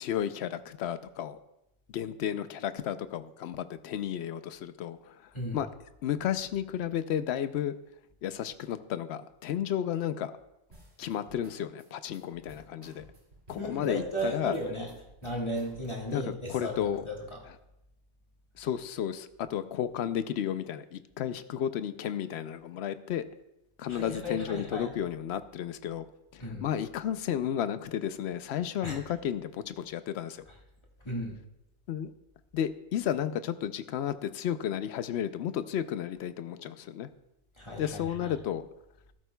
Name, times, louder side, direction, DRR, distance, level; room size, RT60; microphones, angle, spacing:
voice 1, 0.0-1.4 1.9-5.2 5.5-5.7 6.0-7.8 8.2-10.3 11.0-13.1 13.5-14.6 16.1-17.0 18.6-23.2 23.8-26.1 26.3-30.4 31.9-32.1 32.5-37.1 37.8-38.7, left 10 dB, 70° left, 12 dB, 0.8 m, -33 dB
sound 1, 10.7-16.2, right 1 dB, 60° right, 2.6 m, -55 dB
voice 2, 13.6-14.9 15.2-16.8 17.1-17.4 23.9-24.9 26.4-26.6 28.8-29.0 31.1-31.4 37.6-38.4, equal, 25° left, -2 dB, 1.6 m, -35 dB
13.5 x 12.0 x 2.3 m, 0.87 s
omnidirectional pair, 1.2 m